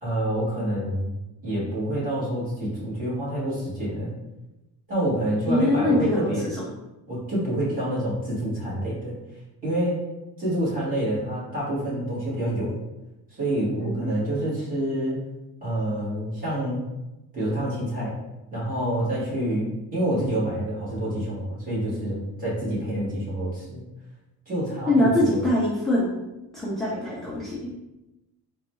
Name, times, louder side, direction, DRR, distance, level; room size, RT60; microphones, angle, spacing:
voice 1, 0.0-1.1 1.4-4.1 4.9-6.5 7.1-9.1 9.6-10.0 10.4-12.8 13.3-15.2 15.6-16.8 17.3-18.1 18.5-23.8 24.5-25.4, right 1 dB, 20° right, -9 dB, 1.5 m, -27 dB
voice 2, 5.5-6.3 13.8-14.1 24.9-26.1 26.5-27.7, left 1 dB, ahead, -8 dB, 0.3 m, -23 dB
3.8 x 2.2 x 3.0 m, 0.98 s
cardioid pair, 175°, 37 cm